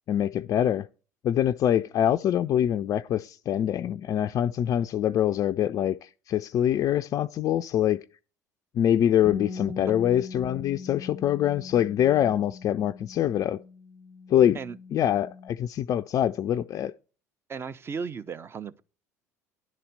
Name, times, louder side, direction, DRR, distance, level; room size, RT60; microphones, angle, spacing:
voice 1, 0.1-0.9 1.2-8.0 8.7-13.6 14.3-14.6 14.9-16.9, left 10 dB, 40° left, 0.4 m, -24 dB
Bass guitar, 9.3-15.5, left 4 dB, 5° left, 0.8 m, -41 dB
voice 2, 17.5-18.8, right 5 dB, 25° right, 0.7 m, -35 dB
10.5 x 4.2 x 6.5 m
figure-of-eight pair, 65°, 9 cm